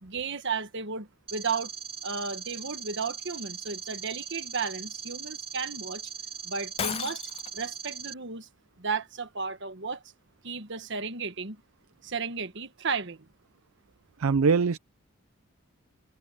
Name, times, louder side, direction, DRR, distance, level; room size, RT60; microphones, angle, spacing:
voice 1, 0.0-1.7 2.0-6.1 6.4-7.2 7.5-8.5 8.8-10.0 10.4-11.6 12.0-13.2, right 5 dB, 60° right, 1.5 m, -34 dB
sound 1, 1.3-8.1, right 7 dB, 25° right, 3.1 m, -40 dB
Shatter, 6.8-7.6, left 8 dB, 30° left, 0.3 m, -33 dB
voice 2, 14.2-14.8, right 5 dB, 85° right, 0.5 m, -22 dB
head